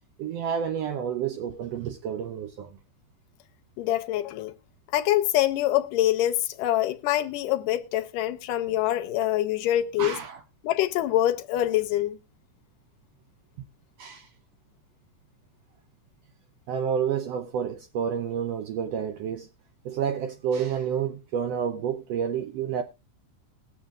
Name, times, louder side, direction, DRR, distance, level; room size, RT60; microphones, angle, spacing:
voice 1, 0.2-2.7 10.0-10.4 13.6-13.7 14.0-14.3 16.7-19.5 19.8-22.8, right 8 dB, 80° right, 1.4 m, -29 dB
voice 2, 3.8-4.5 4.9-10.2 10.6-12.2, left 13 dB, 85° left, 2.3 m, -25 dB
21.0 x 7.1 x 2.4 m
omnidirectional pair, 3.7 m